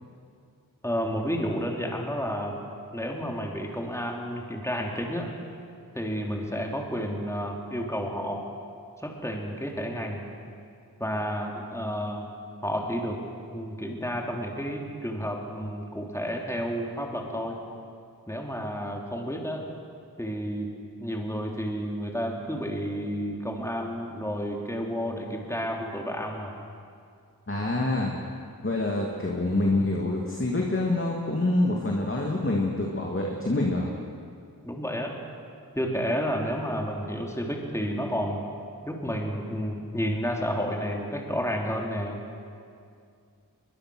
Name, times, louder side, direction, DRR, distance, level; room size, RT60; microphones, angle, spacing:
voice 1, 0.8-2.6 2.9-5.3 5.9-8.4 9.0-10.3 11.0-12.3 12.6-13.2 13.5-17.6 18.3-19.6 20.2-20.7 21.0-26.5 34.6-35.2 35.7-38.4 38.9-42.2, equal, 10° left, 0 dB, 3.2 m, -31 dB
voice 2, 27.5-28.1 28.6-33.9, left 2 dB, 35° left, -1 dB, 2.5 m, -26 dB
22.5 x 22.0 x 6.4 m, 2.3 s
wide cardioid pair, 50°, 37 cm